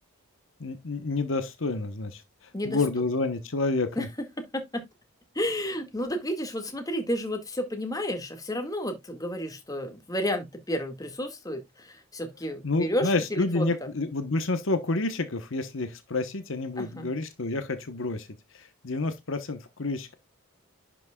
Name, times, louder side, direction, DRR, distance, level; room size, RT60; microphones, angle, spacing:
voice 1, 0.6-4.1 12.6-18.3 18.5-20.2, left 3 dB, 65° left, 1.0 m, -29 dB
voice 2, 4.0-4.8 5.3-13.7 16.8-17.1, equal, 15° left, 1.8 m, -31 dB
11.0 x 6.1 x 2.3 m
head